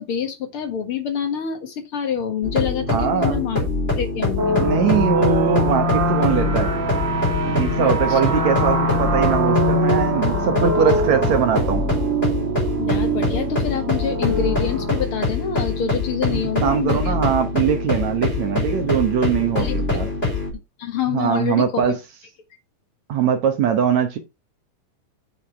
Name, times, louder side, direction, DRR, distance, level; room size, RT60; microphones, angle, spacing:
voice 1, 0.0-3.6 4.0-4.6 7.8-8.4 12.8-17.2 19.6-20.3 20.8-22.0, left 8 dB, 50° left, 1.9 m, -27 dB
sound 1, 2.4-20.5, left 3 dB, 15° left, 3.8 m, -24 dB
voice 2, 2.9-3.4 4.6-6.7 7.5-11.8 16.3-20.1 21.1-22.0 23.1-24.2, right 8 dB, 65° right, 2.2 m, -21 dB
sound 2, 4.4-15.0, right 1 dB, 50° right, 0.9 m, -23 dB
8.5 x 6.5 x 4.5 m
omnidirectional pair, 3.8 m